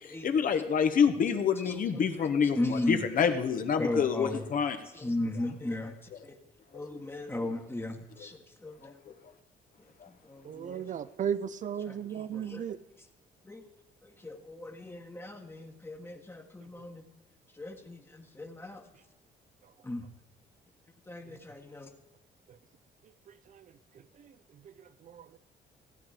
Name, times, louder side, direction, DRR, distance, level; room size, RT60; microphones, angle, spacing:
voice 1, 0.0-4.8 6.7-6.8 8.2-8.3 8.8-8.9 10.0-10.1, left 7 dB, 50° left, 7 dB, 1.1 m, -27 dB
voice 2, 1.6-3.1 3.4-4.5 4.9-6.0 6.2-6.4 6.7-9.0 10.1-10.8 11.8-12.6 13.4-13.6 14.0-17.0 17.5-18.8 19.8-20.0 21.1-21.9, left 1 dB, 15° left, 5 dB, 1.3 m, -37 dB
voice 3, 10.4-12.8 21.3-21.4 23.5-23.6 24.2-24.3 24.6-24.7 25.0-25.3, right 8 dB, 45° right, 16 dB, 0.6 m, -35 dB
15.5 x 8.7 x 4.9 m, 1.0 s
cardioid pair, 105°, 17 cm